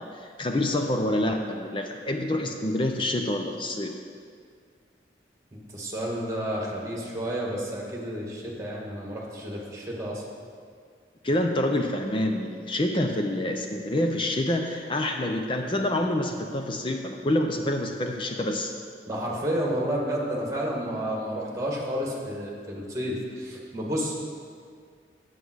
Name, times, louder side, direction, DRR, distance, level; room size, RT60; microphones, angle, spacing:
voice 1, 0.0-4.0 11.2-18.7, left 1 dB, 30° left, 4 dB, 0.6 m, -27 dB
voice 2, 5.7-10.2 19.1-24.2, equal, 20° right, -2 dB, 2.0 m, -31 dB
9.1 x 8.2 x 6.2 m, 2.1 s
head